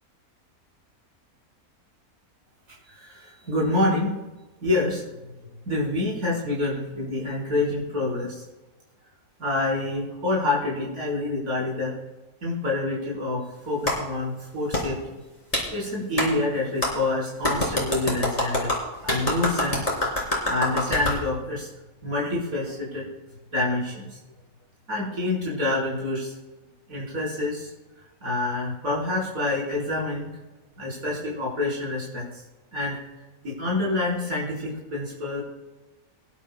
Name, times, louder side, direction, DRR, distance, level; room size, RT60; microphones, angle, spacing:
voice 1, 2.9-4.1 4.6-5.0 5.7-8.4 9.4-11.9 12.4-15.0 15.7-18.7 19.0-19.9 20.2-21.7 22.0-23.1 23.5-24.2 24.9-26.3 26.9-27.7 28.2-30.3 30.8-32.2 32.7-33.0 33.4-35.4, left 2 dB, 70° right, -5 dB, 5.0 m, -27 dB
Clapping, 13.9-14.0 14.7-14.8 15.5-15.7 16.2-16.3 16.8-16.9 17.4-21.2, left 1 dB, 25° left, 3.8 m, -25 dB
23.5 x 11.0 x 2.3 m, 1.1 s
omnidirectional pair, 1.6 m